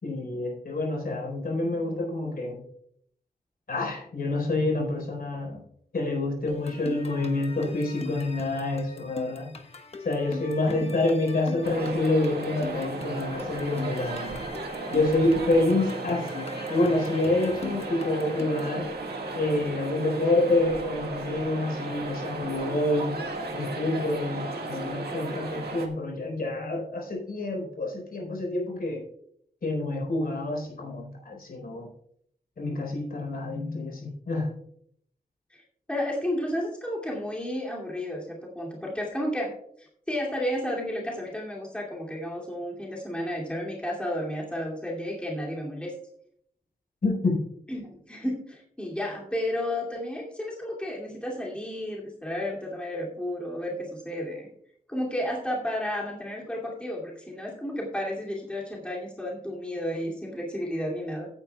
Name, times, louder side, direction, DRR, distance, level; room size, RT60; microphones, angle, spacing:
voice 1, 0.0-2.6 3.7-5.6 5.9-9.6 10.0-14.4 14.9-18.9 19.3-23.2 23.5-29.0 29.6-31.9 32.6-34.5 47.0-47.4, left 2 dB, 65° left, 0 dB, 4.4 m, -27 dB
sound 1, 6.5-18.8, left 3 dB, 40° left, 1.2 m, -41 dB
sound 2, 11.6-25.9, right 3 dB, 80° right, 1.8 m, -35 dB
voice 2, 35.9-45.9 47.7-54.5 54.9-61.3, left 1 dB, 5° left, -3 dB, 2.5 m, -32 dB
16.5 x 9.6 x 2.3 m, 0.68 s
wide cardioid pair, 135°, 16 cm